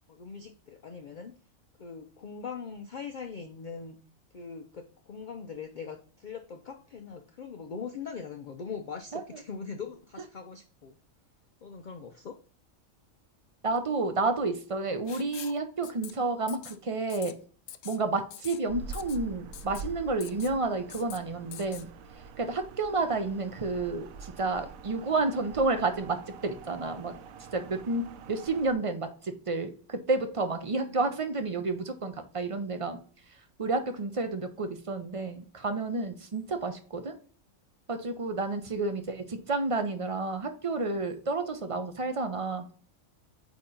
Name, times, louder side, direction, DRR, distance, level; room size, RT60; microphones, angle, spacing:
voice 1, 0.1-1.4 1.8-4.0 4.3-11.0 11.6-12.4 30.7-31.1, left 6 dB, 55° left, 6 dB, 0.5 m, -41 dB
voice 2, 13.6-17.4 17.8-21.9 22.4-27.1 27.5-33.0 33.6-37.1 37.9-42.7, right 3 dB, 40° right, 7 dB, 0.5 m, -30 dB
Writing, 15.1-15.6 15.8-16.1 16.5-16.8 17.1-17.3 17.7-18.0 18.3-18.6 18.9-19.2 19.5-19.8 20.2-20.5 20.9-21.2 21.5-21.8, left 11 dB, 75° left, 0.9 m, -44 dB
sound 1, 18.7-28.7, right 4 dB, 85° right, 1.0 m, -45 dB
8.5 x 2.9 x 3.8 m, 0.43 s
omnidirectional pair, 1.4 m